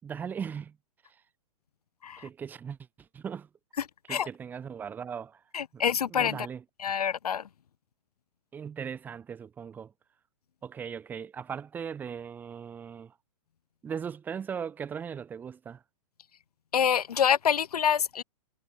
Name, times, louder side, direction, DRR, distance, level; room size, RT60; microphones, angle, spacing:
voice 1, 0.0-0.8 2.2-3.5 4.1-5.4 5.7-6.6 8.5-9.9 10.6-13.1 13.8-15.8, right 7 dB, 10° right, 5.6 m, -38 dB
voice 2, 5.5-6.4 6.8-7.4 16.7-18.2, left 8 dB, 75° left, 3.5 m, -26 dB
hypercardioid pair, 175°, 20 cm